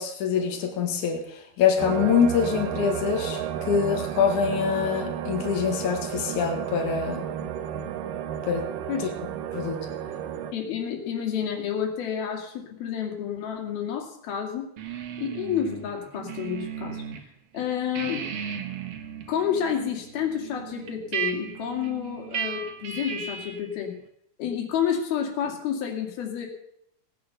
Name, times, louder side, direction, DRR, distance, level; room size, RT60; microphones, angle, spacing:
voice 1, 0.0-7.3 8.5-8.6 9.5-9.8, left 7 dB, 60° left, 2 dB, 3.2 m, -25 dB
sound 1, 1.8-10.5, right 9 dB, 75° right, 2.5 m, -32 dB
voice 2, 10.5-14.7 15.2-18.3 19.3-23.9 24.4-26.5, left 8 dB, 85° left, 2 dB, 4.3 m, -30 dB
sound 2, 14.8-17.2 17.6-23.7, right 8 dB, 55° right, 1.9 m, -36 dB
18.0 x 9.6 x 6.6 m, 0.74 s
omnidirectional pair, 4.2 m